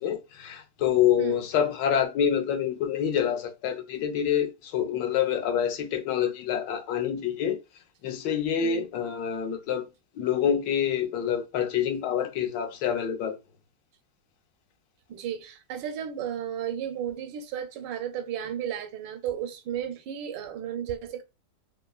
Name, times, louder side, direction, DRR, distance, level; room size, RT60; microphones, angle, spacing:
voice 1, 0.0-7.6 8.0-9.9 10.2-13.3, left 9 dB, 85° left, 1.2 m, -27 dB
voice 2, 15.1-21.2, right 9 dB, 85° right, 1.2 m, -34 dB
3.1 x 2.4 x 2.3 m
omnidirectional pair, 1.8 m